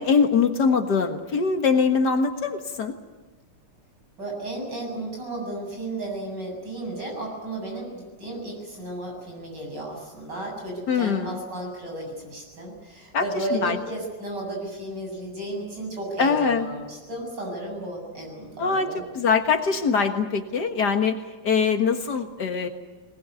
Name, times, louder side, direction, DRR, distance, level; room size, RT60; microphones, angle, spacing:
voice 1, 0.0-3.0 10.9-11.4 13.1-13.2 13.5-13.8 16.2-16.7 18.6-22.7, left 5 dB, 60° left, 6 dB, 2.1 m, -23 dB
voice 2, 4.2-19.1, right 2 dB, 70° right, 0 dB, 8.4 m, -34 dB
22.0 x 20.5 x 9.6 m, 1.2 s
omnidirectional pair, 2.0 m